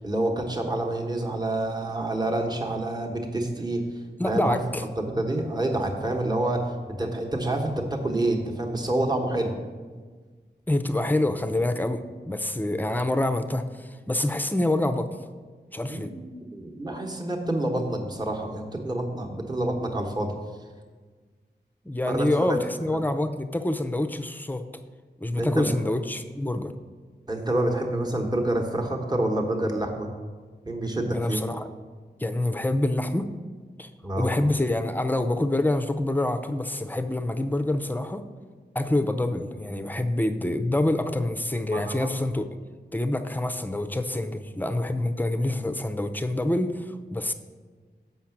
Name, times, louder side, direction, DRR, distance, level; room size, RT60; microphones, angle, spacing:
voice 1, 0.0-3.8 4.2-4.6 5.0-6.6 6.9-9.5 15.9-20.3 22.1-22.6 25.4-25.7 27.3-30.1 30.6-31.4 34.0-34.3 41.7-42.1, right 1 dB, 20° right, 1 dB, 1.1 m, -27 dB
voice 2, 4.2-4.9 10.7-15.1 15.7-16.1 21.8-24.6 25.2-26.7 31.1-31.7 32.2-33.3 33.8-33.9 34.2-38.3 38.7-42.5 42.9-47.3, left 1 dB, 10° left, 8 dB, 0.5 m, -26 dB
7.3 x 5.7 x 5.9 m, 1.5 s
wide cardioid pair, 90°, 18 cm